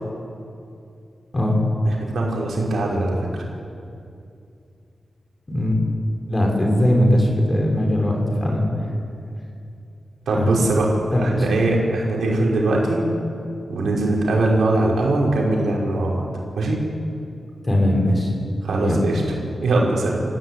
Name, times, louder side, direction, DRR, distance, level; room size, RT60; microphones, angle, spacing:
voice 1, 1.8-3.5 10.3-10.9 11.2-13.0 13.7-16.2 16.6-16.8 18.6-20.2, right 2 dB, 90° right, -2 dB, 5.8 m, -21 dB
voice 2, 5.5-5.8 6.3-8.6 10.3-10.6 11.1-11.4 17.6-18.3 18.8-19.0, left 1 dB, 25° left, 0 dB, 6.3 m, -19 dB
29.0 x 15.5 x 9.9 m, 2.5 s
wide cardioid pair, 100°, 0 cm